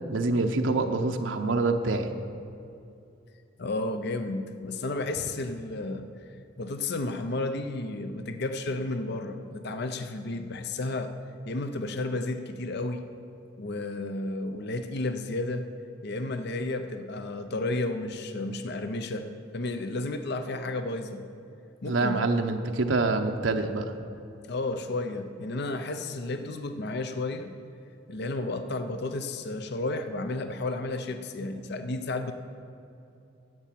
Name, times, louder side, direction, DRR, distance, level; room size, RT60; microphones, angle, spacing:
voice 1, 0.1-2.1 21.9-23.9, right 3 dB, 75° right, 5 dB, 0.7 m, -26 dB
voice 2, 3.6-6.1 6.6-11.1 11.5-13.0 13.6-15.7 16.0-19.3 19.5-21.3 21.8-22.2 24.5-27.6 28.1-32.3, left 2 dB, 60° left, 8 dB, 0.7 m, -32 dB
11.0 x 8.3 x 7.5 m, 2.7 s
head